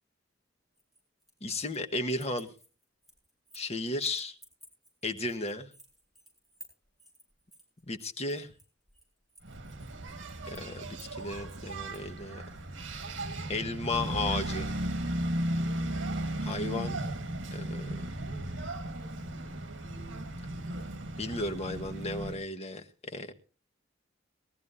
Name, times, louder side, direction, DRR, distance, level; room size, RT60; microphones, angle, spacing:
sound 1, 0.8-1.9 2.2-3.7 4.0-12.1, right 1 dB, ahead, 7.3 m, -56 dB
voice 1, 1.4-2.5 3.5-4.4 5.0-5.7 7.9-8.5 10.5-12.4 13.5-14.7 16.4-17.1 17.5-18.0 21.2-23.3, left 2 dB, 35° left, 1.4 m, -34 dB
Engine, 9.4-22.4, right 1 dB, 85° right, 1.6 m, -36 dB
21.5 x 14.5 x 2.7 m
head